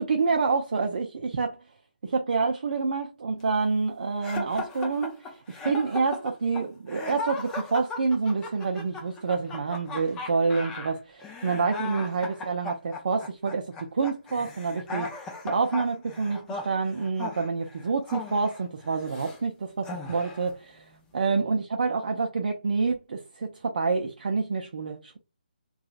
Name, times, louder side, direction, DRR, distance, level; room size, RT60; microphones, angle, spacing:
voice 1, 0.0-1.6 2.0-25.2, right 4 dB, 55° right, 0.5 m, -28 dB
sound 1, 4.2-19.4 19.8-20.5, left 3 dB, 10° left, 0.4 m, -38 dB
2.8 x 2.3 x 2.4 m
figure-of-eight pair, 150°, 5 cm